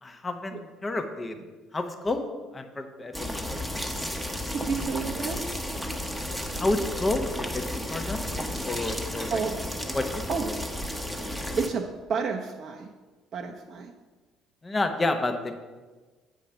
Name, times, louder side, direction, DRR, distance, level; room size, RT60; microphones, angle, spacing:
voice 1, 0.0-1.4 1.7-2.2 2.5-3.7 6.5-8.2 8.6-9.4 9.9-10.1 10.4-10.5 11.3-11.4 14.6-15.5, left 2 dB, 25° left, 6 dB, 0.9 m, -30 dB
sound 1, 3.1-11.7, left 1 dB, 5° left, 1.1 m, -33 dB
voice 2, 4.3-5.4 9.3-9.6 10.3-10.5 11.6-12.9 13.3-13.9, right 5 dB, 50° right, 2 dB, 0.7 m, -30 dB
8.2 x 5.1 x 5.8 m, 1.3 s
figure-of-eight pair, 55°, 0 cm